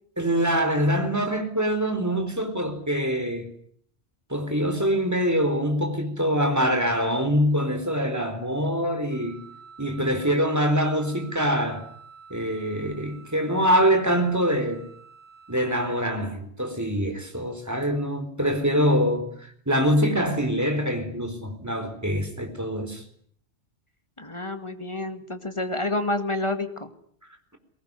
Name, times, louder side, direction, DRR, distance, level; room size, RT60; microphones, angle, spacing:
voice 1, 0.2-3.5 4.3-9.4 9.8-11.9 12.3-14.8 15.5-23.0, equal, 15° right, 3.9 m, -24 dB
Wind instrument woodwind instrument, 9.1-16.0, right 6 dB, 80° left, 4.4 m, -49 dB
voice 2, 24.2-26.9, left 2 dB, 25° left, 2.1 m, -29 dB
22.5 x 19.0 x 9.7 m
omnidirectional pair, 1.2 m